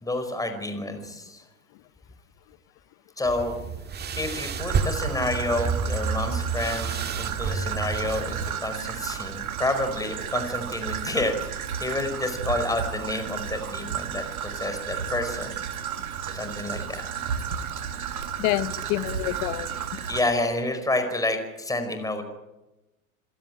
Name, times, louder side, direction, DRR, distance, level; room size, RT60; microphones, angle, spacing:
voice 1, 0.0-1.4 3.2-3.6 4.2-14.3 14.6-15.6 16.3-17.1 20.1-22.2, left 2 dB, 10° left, 7 dB, 5.0 m, -29 dB
sound 1, 3.3-8.5, right 5 dB, 25° right, 2.0 m, -30 dB
Traffic noise roadway noise / Trickle dribble, 4.6-20.2, right 8 dB, 80° right, 2.7 m, -33 dB
voice 2, 18.4-20.0, left 17 dB, 50° left, 15 dB, 1.4 m, -28 dB
27.5 x 17.0 x 9.1 m, 1.0 s
hypercardioid pair, 100°, 43 cm